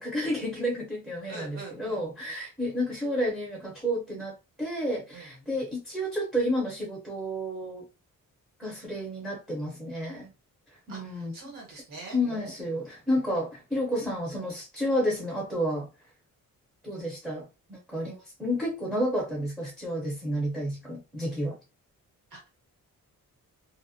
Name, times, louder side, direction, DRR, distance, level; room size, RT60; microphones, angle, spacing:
voice 1, 0.0-7.8 8.6-10.3 10.9-11.3 12.1-15.9 16.8-21.6, equal, ahead, 0.6 m, -31 dB
voice 2, 1.2-2.1 5.1-5.5 10.9-12.2 22.3-22.5, right 3 dB, 70° right, 1.3 m, -44 dB
2.4 x 2.1 x 2.5 m
wide cardioid pair, 160°, 34 cm